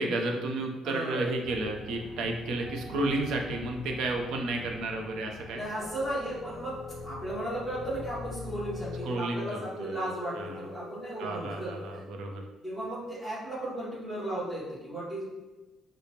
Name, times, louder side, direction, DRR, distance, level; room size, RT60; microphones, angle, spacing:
voice 1, 0.0-5.6 9.0-10.1 10.3-10.7 11.2-12.4, right 2 dB, 75° right, 2 dB, 0.5 m, -32 dB
voice 2, 0.8-1.3 5.5-12.0 12.6-15.2, right 1 dB, 10° right, -7 dB, 1.0 m, -35 dB
sound 1, 1.4-9.1, left 3 dB, 35° left, 0.9 m, -43 dB
sound 2, 5.8-12.0, left 3 dB, 45° right, 0.9 m, -45 dB
5.0 x 2.1 x 2.8 m, 1.2 s
cardioid pair, 145°, 0 cm